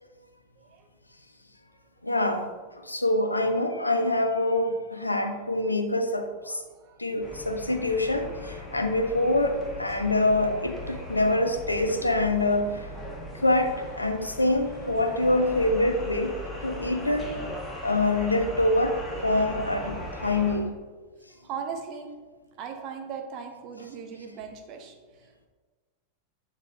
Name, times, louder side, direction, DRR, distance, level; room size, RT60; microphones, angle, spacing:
voice 1, 2.0-2.5 2.8-6.6 7.0-12.9 13.4-16.4 16.6-17.3 17.8-20.8, left 2 dB, 85° left, 6 dB, 0.5 m, -25 dB
voice 2, 6.4-7.0 10.8-11.0 11.3-11.4 21.3-22.1 22.6-25.5, right 6 dB, 40° right, 4 dB, 0.8 m, -39 dB
sound 1, 7.2-20.6, left 1 dB, 10° left, 1.5 m, -39 dB
7.0 x 4.0 x 3.6 m, 1.4 s
figure-of-eight pair, 90°, 0 cm